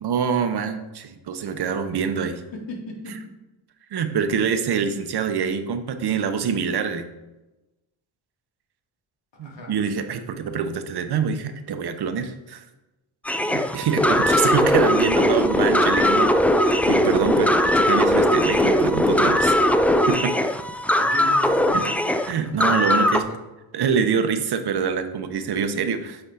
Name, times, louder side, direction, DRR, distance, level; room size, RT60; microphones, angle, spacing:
voice 1, 0.0-2.4 3.9-7.1 9.4-12.6 13.5-19.6 20.1-20.3 21.7-21.8 22.2-23.2 23.7-26.2, right 6 dB, 55° right, 8 dB, 0.9 m, -25 dB
voice 2, 2.5-3.2 9.4-9.8 20.8-21.9 22.8-23.4, left 1 dB, 65° left, -2 dB, 2.4 m, -35 dB
sound 1, 13.3-23.2, left 1 dB, 5° left, 0.3 m, -19 dB
8.1 x 3.5 x 5.0 m, 1.0 s
cardioid pair, 70°, 47 cm